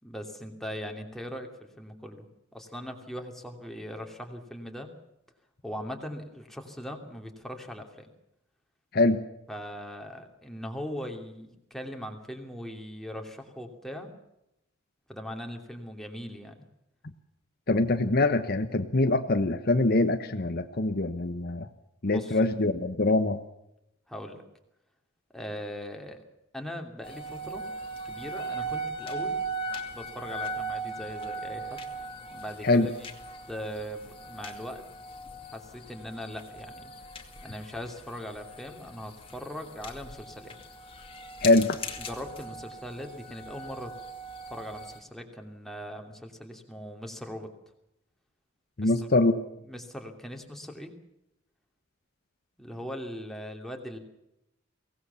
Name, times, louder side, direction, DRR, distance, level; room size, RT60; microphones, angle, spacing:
voice 1, 0.0-2.3 2.5-4.9 5.6-8.1 9.5-14.1 15.1-16.6 22.1-22.4 24.1-24.4 25.3-26.2 26.5-27.7 28.1-29.4 29.9-31.8 32.3-32.9 33.5-34.8 35.4-36.9 37.4-40.5 42.0-43.9 44.5-47.5 48.8-48.9 49.6-50.9 52.6-54.0, equal, ahead, 2 dB, 2.9 m, -40 dB
voice 2, 17.7-21.7 22.0-23.4 32.6-32.9 41.4-41.8 48.8-49.4, left 2 dB, 50° left, 8 dB, 1.1 m, -24 dB
sound 1, 27.0-45.0, right 2 dB, 25° left, 2.4 m, -39 dB
23.5 x 18.0 x 7.1 m, 0.84 s
head